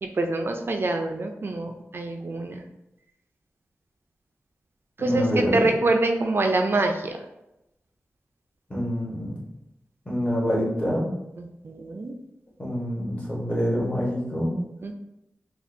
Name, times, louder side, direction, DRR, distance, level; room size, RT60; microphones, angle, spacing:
voice 1, 0.0-2.6 5.0-7.2 11.4-12.1 14.8-14.9, right 2 dB, 50° right, 4 dB, 0.3 m, -26 dB
voice 2, 5.0-5.6 8.7-9.4 10.0-11.1 12.6-14.5, equal, 25° left, -6 dB, 1.4 m, -26 dB
4.2 x 2.3 x 2.6 m, 0.90 s
wide cardioid pair, 85°, 5 cm